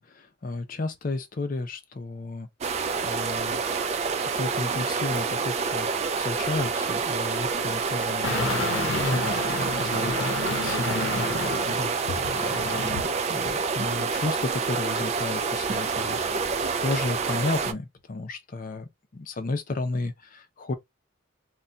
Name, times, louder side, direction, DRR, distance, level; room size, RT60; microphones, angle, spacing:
voice 1, 0.0-2.5 3.0-3.6 4.3-5.9 6.2-11.9 12.5-16.2 16.8-20.7, left 3 dB, 45° left, 0.5 m, -33 dB
sound 1, 2.6-17.7, right 5 dB, 35° right, 0.3 m, -28 dB
sound 2, 8.2-13.1 13.5-13.6, left 3 dB, 85° left, 0.7 m, -30 dB
2.3 x 2.2 x 3.8 m
head